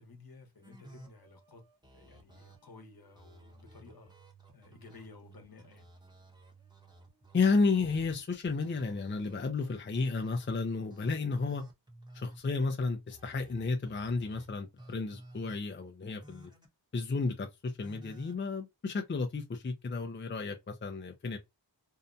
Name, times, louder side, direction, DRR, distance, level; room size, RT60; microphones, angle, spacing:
voice 1, 0.0-1.6 1.9-4.1 4.5-5.9, left 3 dB, 55° left, 1.0 m, -54 dB
sound 1, 0.6-8.2 8.6-10.5 10.9-12.4 13.1-14.5 14.8-15.6 16.2-16.7 17.8-18.4, right 1 dB, 10° right, 0.9 m, -55 dB
voice 2, 7.3-11.6 12.1-16.5 16.9-21.4, left 4 dB, 30° left, 0.5 m, -32 dB
2.7 x 2.1 x 2.5 m
wide cardioid pair, 50°, 42 cm